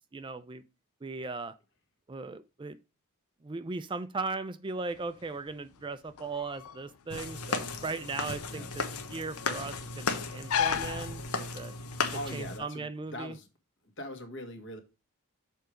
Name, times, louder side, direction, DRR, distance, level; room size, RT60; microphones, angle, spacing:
voice 1, 0.1-0.6 1.0-1.5 2.1-2.8 3.4-11.7 12.3-13.4, right 3 dB, 20° right, 0.4 m, -38 dB
sound 1, 4.9-11.8, left 8 dB, 75° left, 0.5 m, -37 dB
sound 2, 7.1-12.6, left 4 dB, 90° left, 1.2 m, -35 dB
voice 2, 8.5-8.9 12.1-13.5 14.0-14.8, left 1 dB, 55° left, 1.6 m, -41 dB
6.8 x 4.7 x 5.0 m
head